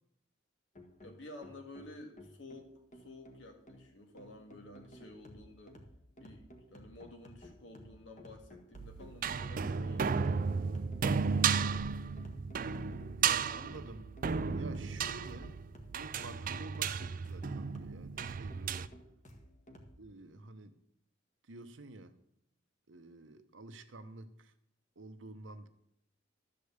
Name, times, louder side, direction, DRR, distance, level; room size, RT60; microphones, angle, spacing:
sound 1, 0.7-20.0, equal, 40° left, 1.7 m, -55 dB
voice 1, 1.0-5.8 6.2-10.4 13.3-14.1, left 1 dB, 65° left, 4 dB, 1.9 m, -52 dB
sound 2, 8.7-18.9, right 6 dB, 45° right, 0.4 m, -34 dB
voice 2, 13.2-14.1 14.5-15.5 15.9-18.9 20.0-20.8 21.5-22.1 22.9-24.5 25.0-25.7, right 2 dB, 75° right, 9 dB, 1.0 m, -50 dB
12.5 x 5.1 x 8.1 m, 0.74 s
head